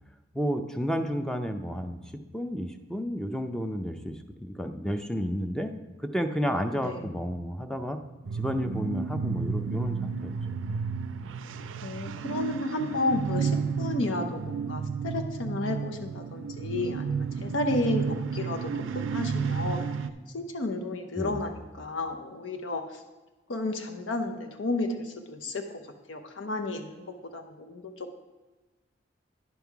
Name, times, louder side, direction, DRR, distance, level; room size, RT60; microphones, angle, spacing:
voice 1, 0.3-5.7 6.0-8.0 8.4-10.3 10.7-10.8 21.2-21.4, equal, 5° left, 7 dB, 0.5 m, -31 dB
sound 1, 8.3-20.1, right 5 dB, 85° right, 0.4 m, -32 dB
voice 2, 11.8-19.9 20.3-23.0 23.5-25.8 26.1-28.2, left 2 dB, 80° left, 5 dB, 0.7 m, -32 dB
10.5 x 5.5 x 4.6 m, 1.2 s
head